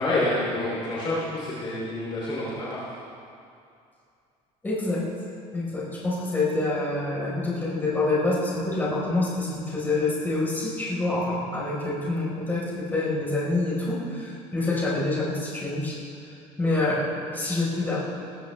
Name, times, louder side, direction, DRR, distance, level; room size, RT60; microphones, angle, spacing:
voice 1, 0.0-2.8, left 1 dB, 35° left, -7 dB, 3.1 m, -28 dB
voice 2, 4.6-5.0 5.5-16.1 16.6-18.0, left 2 dB, 15° left, -7 dB, 4.3 m, -27 dB
19.5 x 14.5 x 3.4 m, 2.5 s
cardioid pair, 145°, 15 cm